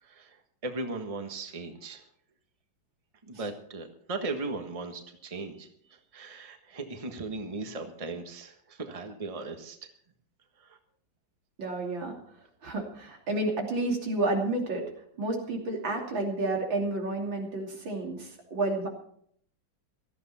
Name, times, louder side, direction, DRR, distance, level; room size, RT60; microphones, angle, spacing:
voice 1, 0.0-2.0 3.2-9.8 10.6-10.8, right 3 dB, 20° right, 6 dB, 1.3 m, -38 dB
voice 2, 11.6-12.1 12.6-14.8 15.2-18.9, right 2 dB, 90° right, 1 dB, 3.6 m, -30 dB
17.0 x 13.5 x 4.3 m, 0.64 s
omnidirectional pair, 2.0 m